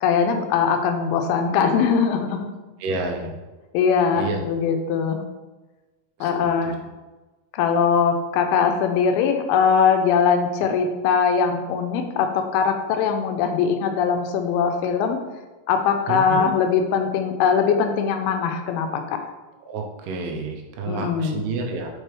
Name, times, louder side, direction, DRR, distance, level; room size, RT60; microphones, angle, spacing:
voice 1, 0.0-2.5 3.7-5.2 6.2-6.7 7.5-15.2 15.7-19.2 20.9-21.4, left 6 dB, 85° left, 5 dB, 2.5 m, -21 dB
voice 2, 2.8-3.3 4.2-4.4 6.2-6.7 16.1-16.5 19.7-22.0, right 3 dB, 85° right, 3 dB, 2.8 m, -29 dB
6.6 x 4.5 x 3.3 m, 1.2 s
omnidirectional pair, 4.4 m